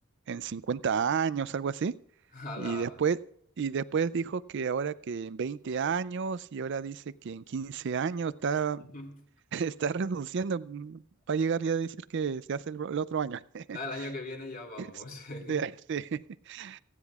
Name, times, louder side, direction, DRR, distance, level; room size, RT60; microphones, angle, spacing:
voice 1, 0.3-1.9 2.6-3.2 3.6-8.9 9.5-11.0 11.3-13.8 14.8-14.9 15.5-16.8, right 6 dB, 55° right, 0.4 m, -31 dB
voice 2, 2.3-3.0 8.8-9.2 13.7-15.6, left 2 dB, 40° left, 2.6 m, -39 dB
28.5 x 9.8 x 2.4 m
head